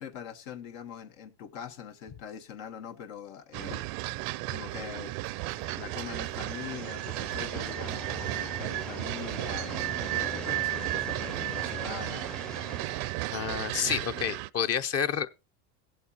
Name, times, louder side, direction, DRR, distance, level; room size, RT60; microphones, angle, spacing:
voice 1, 0.0-3.8 4.5-5.1 5.7-12.2, left 8 dB, 80° left, 1.1 m, -42 dB
sound 1, 3.5-14.5, right 20 dB, 65° right, 0.5 m, -34 dB
sound 2, 5.2-13.3, equal, ahead, 0.5 m, -43 dB
voice 2, 13.3-15.3, left 8 dB, 40° left, 0.7 m, -29 dB
17.0 x 7.9 x 2.9 m
supercardioid pair, 105°, 38 cm